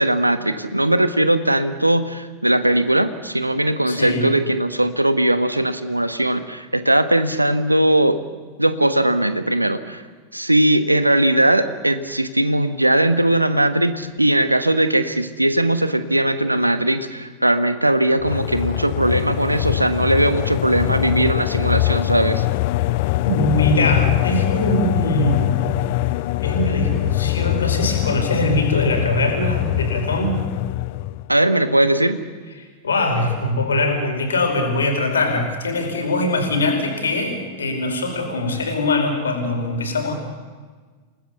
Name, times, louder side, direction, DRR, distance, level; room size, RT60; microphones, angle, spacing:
voice 1, 0.0-8.2 8.6-10.0 10.3-22.4 31.3-32.2, right 1 dB, 85° right, 11 dB, 1.4 m, -19 dB
voice 2, 3.9-4.3 23.2-25.6 26.4-30.4 32.8-40.1, left 1 dB, 70° left, 4 dB, 5.0 m, -22 dB
sound 1, 18.2-31.3, left 18 dB, 50° left, 0.6 m, -22 dB
28.5 x 19.0 x 7.0 m, 1.4 s
figure-of-eight pair, 90°, 0 cm